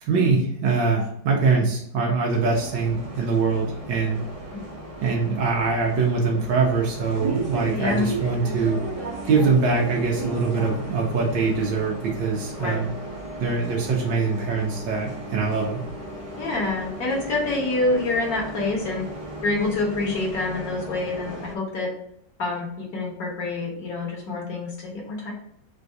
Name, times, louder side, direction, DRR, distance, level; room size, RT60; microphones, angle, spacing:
voice 1, 0.0-4.2 5.0-8.8 9.3-12.9 13.4-15.8, right 4 dB, 90° right, -1 dB, 1.6 m, -23 dB
Bus, 2.3-21.5, right 2 dB, 35° right, 0.5 m, -35 dB
voice 2, 7.8-8.1 12.6-12.8 16.4-19.1 19.4-21.9 22.4-25.3, left 2 dB, 55° left, -2 dB, 1.7 m, -26 dB
4.3 x 2.6 x 4.5 m, 0.72 s
omnidirectional pair, 2.0 m